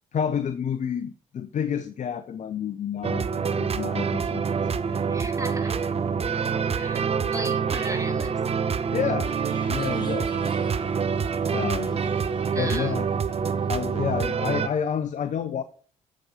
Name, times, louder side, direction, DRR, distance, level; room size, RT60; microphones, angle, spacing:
voice 1, 0.1-5.0 8.9-9.3 9.7-10.5 11.5-12.0 12.6-13.1 13.7-15.6, left 8 dB, 50° left, 0.8 m, -30 dB
sound 1, 3.0-14.7, right 6 dB, 40° right, 0.8 m, -26 dB
voice 2, 5.1-5.9 6.7-8.4 12.5-13.0, right 2 dB, 20° right, 3.0 m, -36 dB
sound 2, 9.2-14.2, left 2 dB, 25° left, 5.5 m, -49 dB
7.9 x 6.3 x 5.2 m
hypercardioid pair, 50°, 16 cm